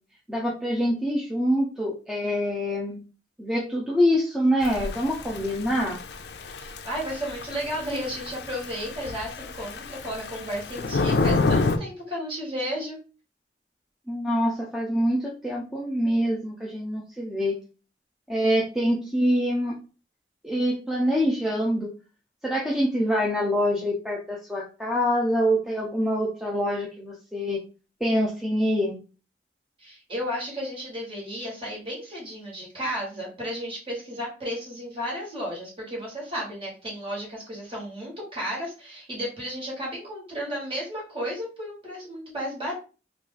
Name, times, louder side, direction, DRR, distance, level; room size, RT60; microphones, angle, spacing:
voice 1, 0.3-3.0 3.4-6.0 14.1-17.6 18.3-19.8 20.4-21.9 22.4-27.6 28.0-29.0, equal, ahead, -3 dB, 0.5 m, -25 dB
Thunder / Rain, 4.6-11.8, left 3 dB, 65° left, 0.4 m, -29 dB
voice 2, 6.6-13.0 29.8-42.7, equal, 30° right, -4 dB, 1.7 m, -33 dB
3.1 x 2.5 x 3.8 m, 0.34 s
head